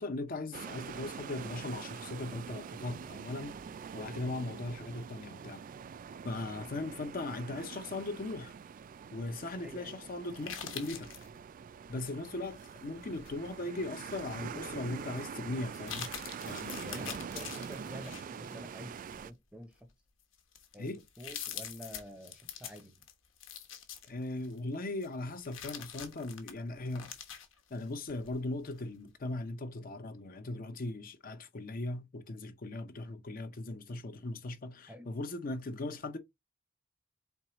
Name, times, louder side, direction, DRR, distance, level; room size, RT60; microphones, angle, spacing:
voice 1, 0.0-3.6 3.9-5.6 6.2-8.5 9.1-11.1 11.9-16.1 16.4-17.1 20.8-21.0 24.0-27.1 27.7-36.2, left 2 dB, 45° left, 0.7 m, -39 dB
sound 1, 0.5-19.3, right 6 dB, 45° right, 0.3 m, -45 dB
voice 2, 9.6-10.0 16.8-19.9 20.7-23.0 34.9-35.1, equal, 5° right, 0.7 m, -49 dB
sound 2, 10.3-11.3 12.6-13.5 14.0-14.1 15.1-15.2 15.7-18.5 19.0-19.2 19.9-20.0 20.3-24.6 25.0-28.3 28.7-28.8, left 8 dB, 80° left, 1.2 m, -45 dB
4.5 x 3.8 x 3.0 m
head